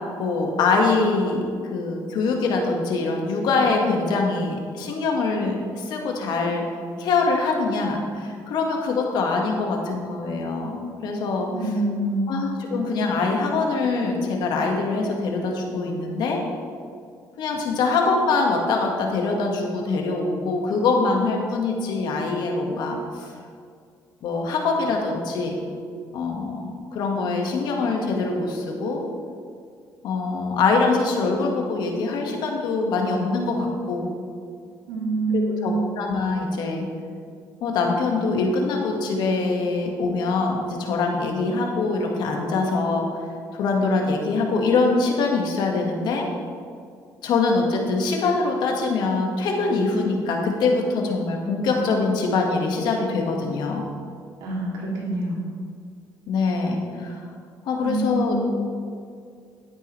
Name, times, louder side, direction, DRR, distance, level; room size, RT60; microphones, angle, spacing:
voice 1, 0.2-6.7 7.0-11.5 12.3-16.4 17.4-23.3 24.2-25.6 26.1-29.0 30.0-34.1 35.3-36.9 37.6-43.1 43.5-46.3 47.2-53.9 56.3-57.2 57.7-58.4, left 3 dB, 75° left, 1 dB, 1.8 m, -23 dB
voice 2, 11.5-12.5 34.9-35.9 54.4-55.4 57.8-58.6, right 2 dB, 90° right, -3 dB, 2.9 m, -26 dB
12.0 x 9.5 x 3.3 m, 2.2 s
cardioid pair, 95°, 8 cm